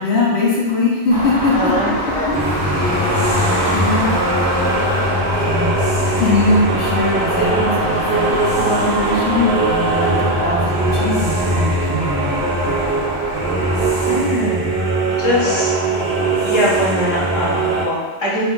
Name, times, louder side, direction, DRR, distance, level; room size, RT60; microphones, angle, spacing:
voice 1, 0.0-1.9 2.3-2.7 3.7-4.2 5.4-5.7 6.2-12.4, left 2 dB, 70° left, -5 dB, 0.9 m, -21 dB
sound 1, 1.1-14.2, equal, 15° right, 0.7 m, -25 dB
voice 2, 1.5-2.3 14.1-14.8 15.2-15.7 16.4-18.4, left 1 dB, 30° left, -6 dB, 0.6 m, -21 dB
sound 2, 2.3-17.9, right 2 dB, 55° right, 0.6 m, -20 dB
2.5 x 2.2 x 3.7 m, 1.3 s
omnidirectional pair, 1.2 m